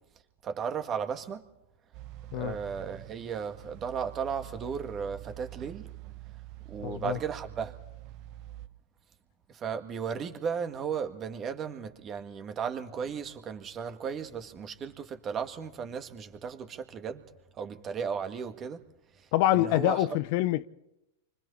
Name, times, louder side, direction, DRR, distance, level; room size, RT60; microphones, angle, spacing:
voice 1, 0.4-1.4 2.3-5.9 6.7-7.8 9.5-17.3 17.6-18.8 19.2-20.1, right 6 dB, 30° right, 1.9 m, -35 dB
sound 1, 1.9-8.7, right 14 dB, 50° right, 1.1 m, -46 dB
voice 2, 6.8-7.2 19.3-20.7, left 15 dB, 55° left, 0.7 m, -26 dB
29.5 x 25.0 x 4.2 m
hypercardioid pair, 110°, 0 cm